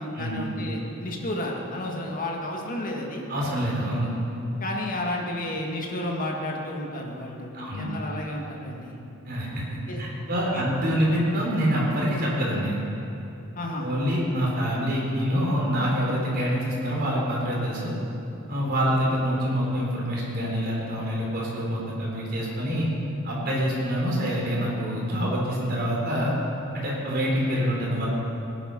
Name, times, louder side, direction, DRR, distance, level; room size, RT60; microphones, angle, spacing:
voice 1, 0.0-3.2 4.6-9.0 9.9-10.0 10.5-10.6 13.5-13.9 18.8-19.0, left 1 dB, 45° left, 0 dB, 2.0 m, -32 dB
voice 2, 3.3-4.1 7.5-7.9 9.3-12.8 13.8-17.9 18.5-22.9 23.2-26.3 26.7-28.1, equal, 50° right, -4 dB, 4.0 m, -26 dB
18.5 x 10.5 x 5.5 m, 2.8 s
head